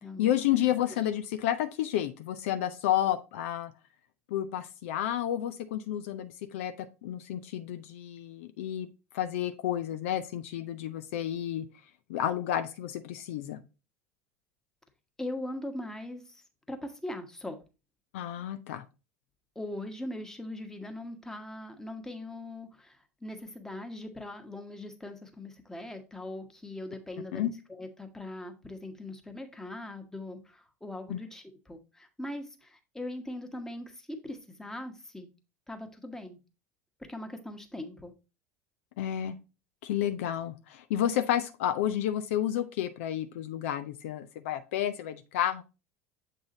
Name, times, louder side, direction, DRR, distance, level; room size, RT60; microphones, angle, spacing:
voice 1, 0.2-3.7 4.3-8.9 9.1-11.7 12.1-13.6 18.1-18.8 27.3-27.5 31.1-31.2 39.0-39.3 39.8-45.6, left 11 dB, 65° left, 10 dB, 0.5 m, -31 dB
voice 2, 15.2-17.6 19.5-35.3 35.7-36.4 37.1-38.1, left 1 dB, 5° left, 5 dB, 1.2 m, -40 dB
7.3 x 3.8 x 3.8 m, 0.30 s
figure-of-eight pair, 75°, 8 cm